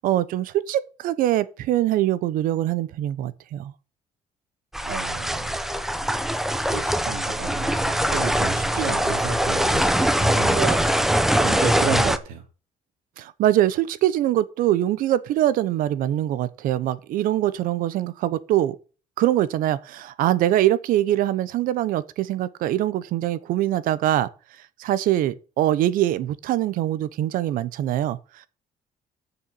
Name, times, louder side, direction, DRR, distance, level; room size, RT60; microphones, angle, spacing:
voice 1, 0.0-3.7 10.5-10.8 13.2-18.8 19.2-24.3 24.8-28.5, right 13 dB, 70° right, 0.9 m, -23 dB
sound 1, 4.7-12.2, equal, ahead, 0.6 m, -22 dB
voice 2, 4.8-5.6 6.3-11.1 11.4-12.4, right 5 dB, 90° right, 2.9 m, -32 dB
7.0 x 6.6 x 7.6 m
cardioid pair, 170°, 15 cm